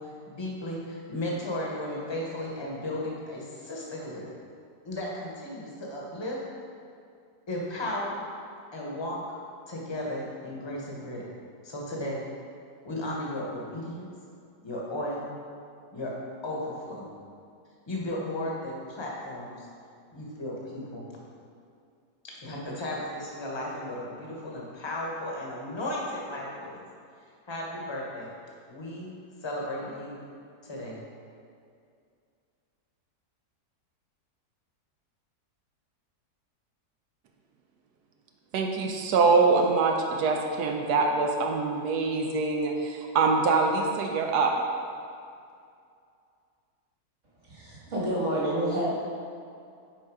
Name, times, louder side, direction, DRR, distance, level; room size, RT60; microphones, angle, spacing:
voice 1, 0.0-4.3 4.8-6.4 7.5-8.2 8.7-9.2 9.7-11.2 11.6-12.2 12.8-14.0 14.6-15.3 15.9-16.1 16.4-17.1 17.9-19.7 20.1-21.0 22.2-26.9 27.5-28.3 28.7-29.1 29.4-30.2 30.6-31.0, left 1 dB, 20° left, -3 dB, 0.9 m, -35 dB
voice 2, 38.5-44.5, right 4 dB, 85° right, 2 dB, 1.2 m, -24 dB
voice 3, 47.4-48.9, right 1 dB, 50° right, -7 dB, 2.1 m, -28 dB
6.4 x 4.5 x 4.7 m, 2.4 s
omnidirectional pair, 1.7 m